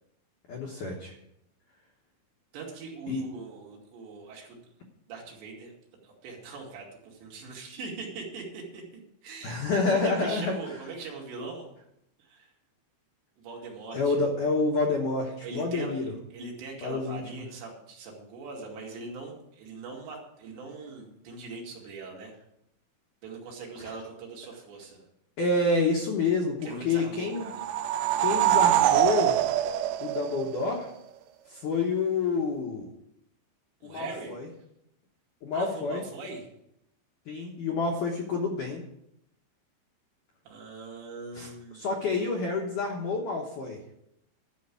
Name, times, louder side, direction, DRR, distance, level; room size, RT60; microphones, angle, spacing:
voice 1, 0.5-1.1 3.1-3.2 9.4-10.8 13.9-16.1 16.8-17.4 25.4-27.4 28.2-29.4 30.0-30.9 31.5-32.9 33.8-34.5 35.4-36.0 37.3-38.8 41.3-43.8, left 3 dB, 75° left, 0 dB, 1.9 m, -28 dB
voice 2, 2.5-4.7 5.1-5.7 6.0-8.8 9.2-9.7 9.9-11.7 12.2-12.5 13.4-14.2 15.4-15.9 16.3-22.3 23.2-25.0 26.6-27.7 33.8-34.3 35.5-36.5 40.5-41.9, right 4 dB, 65° right, -1 dB, 4.1 m, -41 dB
sound 1, 27.3-30.9, right 12 dB, 85° right, 2.6 m, -24 dB
12.5 x 5.3 x 8.4 m, 0.81 s
omnidirectional pair, 5.4 m